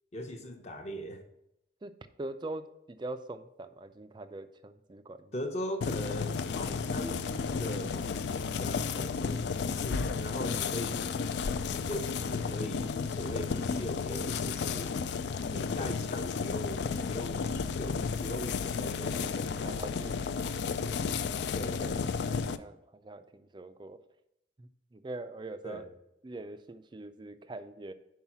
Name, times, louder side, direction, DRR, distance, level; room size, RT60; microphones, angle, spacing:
voice 1, 0.1-1.2 5.3-11.1 11.7-14.9 15.5-19.8 21.5-22.1 25.6-25.9, equal, 35° left, 4 dB, 0.8 m, -40 dB
voice 2, 2.2-5.3 19.6-21.1 22.6-24.0 24.6-25.9 26.2-27.9, right 2 dB, 25° right, 11 dB, 0.3 m, -43 dB
sound 1, 5.8-22.6, left 5 dB, 60° left, 0.3 m, -33 dB
5.6 x 4.7 x 5.9 m, 0.84 s
head